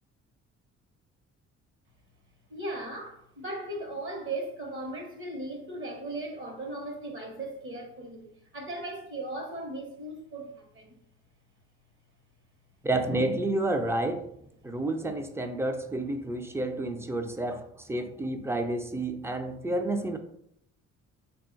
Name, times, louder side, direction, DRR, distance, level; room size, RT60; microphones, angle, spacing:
voice 1, 2.5-11.0, right 2 dB, 40° right, 1.0 m, -37 dB
voice 2, 12.8-14.3 14.6-20.2, right 2 dB, 10° right, 0.4 m, -30 dB
3.6 x 2.3 x 3.8 m
cardioid pair, 90°, 30 cm